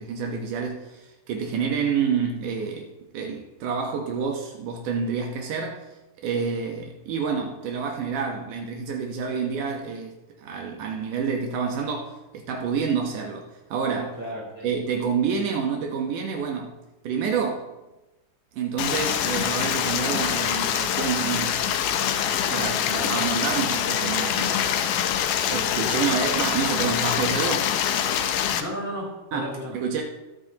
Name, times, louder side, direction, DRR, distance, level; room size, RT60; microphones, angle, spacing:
voice 1, 0.0-5.9 6.2-14.2 14.6-16.7 17.0-17.7 18.5-21.7 22.5-24.6 25.5-27.7 29.3-30.0, right 6 dB, 80° right, 2.6 m, -28 dB
voice 2, 14.2-14.7 22.5-23.1 28.6-29.8, equal, 5° right, 4.2 m, -34 dB
Stream, 18.8-28.6, left 9 dB, 80° left, 2.3 m, -25 dB
22.0 x 8.8 x 2.9 m
omnidirectional pair, 3.7 m